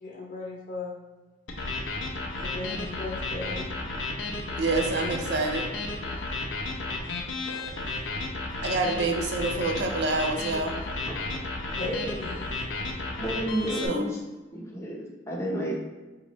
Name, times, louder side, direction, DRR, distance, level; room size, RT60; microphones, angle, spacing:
voice 1, 0.0-0.9 2.4-3.6 5.0-5.2 7.0-7.1 7.4-7.7 9.4-9.7 11.8-12.7, left 2 dB, 45° left, -2 dB, 0.8 m, -37 dB
sound 1, 1.5-13.9, left 2 dB, 90° left, 0.6 m, -33 dB
voice 2, 4.6-5.7 8.6-10.7 13.8-14.0, right 3 dB, 65° right, 3 dB, 0.5 m, -27 dB
voice 3, 11.0-11.4 11.9-12.1 13.2-14.2 14.5-15.8, equal, 15° left, -3 dB, 0.7 m, -31 dB
5.0 x 2.8 x 3.0 m, 1.2 s
head